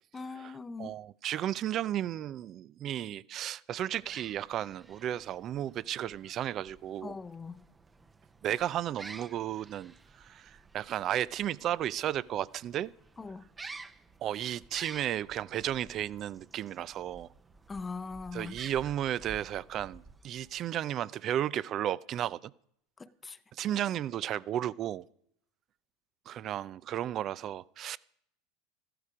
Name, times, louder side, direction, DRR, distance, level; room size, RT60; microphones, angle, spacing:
voice 1, 0.1-1.0 7.0-7.6 13.2-13.5 17.7-18.6 23.0-23.4, left 4 dB, 20° left, 0.8 m, -41 dB
voice 2, 0.8-7.2 8.4-12.9 14.2-17.3 18.3-22.5 23.5-25.1 26.3-28.0, right 11 dB, 45° right, 0.5 m, -34 dB
sound 1, 3.9-20.6, right 3 dB, 15° right, 0.8 m, -52 dB
14.0 x 12.5 x 4.9 m
hypercardioid pair, 100°, 0 cm